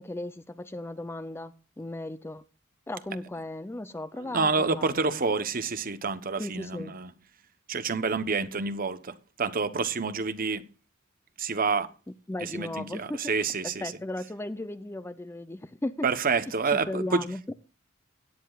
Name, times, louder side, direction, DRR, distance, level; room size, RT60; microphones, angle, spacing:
voice 1, 0.0-2.4 2.9-5.2 6.4-6.9 12.3-13.2 13.6-16.1 16.7-17.5, left 1 dB, 10° left, 0.4 m, -36 dB
voice 2, 4.2-7.1 7.7-10.6 11.4-11.9 12.4-13.8 16.0-17.2, right 4 dB, 40° right, 0.9 m, -28 dB
16.5 x 10.0 x 2.4 m
head